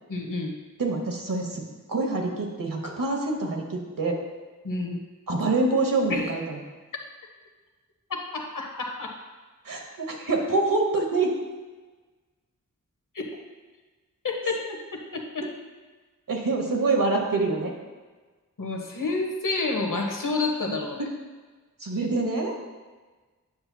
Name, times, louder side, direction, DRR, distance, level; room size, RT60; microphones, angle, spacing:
voice 1, 0.1-0.5 4.6-5.0 6.1-6.3 8.1-9.1 13.1-13.3 14.2-15.5 18.6-21.0, left 3 dB, 70° left, 1 dB, 1.0 m, -29 dB
voice 2, 0.8-1.6 1.9-4.2 5.3-6.6 9.6-11.3 16.3-17.7 20.7-21.1 21.8-22.5, right 3 dB, 80° right, 1 dB, 1.1 m, -26 dB
8.6 x 5.7 x 2.3 m, 1.3 s
wide cardioid pair, 50°, 33 cm